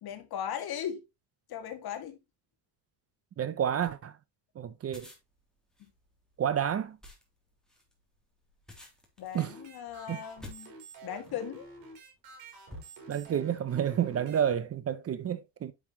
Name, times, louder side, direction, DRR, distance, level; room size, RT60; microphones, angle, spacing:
voice 1, 0.0-1.0 1.5-2.2 9.2-10.7 11.0-11.7, left 9 dB, 60° left, 2.1 m, -38 dB
voice 2, 3.4-4.2 4.6-5.1 6.4-7.0 9.3-9.5 10.1-10.2 13.1-15.7, right 9 dB, 35° right, 0.6 m, -30 dB
sound 1, 4.8-11.5 12.1-12.3 12.7-13.4, left 1 dB, ahead, 2.8 m, -51 dB
sound 2, 9.4-14.4, right 4 dB, 65° right, 4.6 m, -49 dB
9.8 x 5.7 x 2.9 m
cardioid pair, 140°, 42 cm